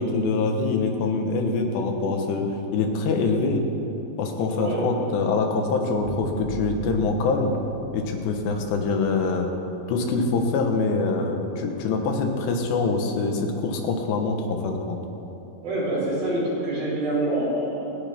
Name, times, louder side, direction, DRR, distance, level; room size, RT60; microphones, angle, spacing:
voice 1, 0.0-3.6 4.2-7.6 7.9-9.5 9.9-15.0, left 3 dB, 90° left, 3 dB, 3.4 m, -24 dB
Bowed string instrument, 6.0-12.5, right 3 dB, 20° right, 3.4 m, -41 dB
voice 2, 15.6-17.9, right 1 dB, 60° right, -8 dB, 5.6 m, -26 dB
26.0 x 10.0 x 3.6 m, 3.0 s
omnidirectional pair, 4.7 m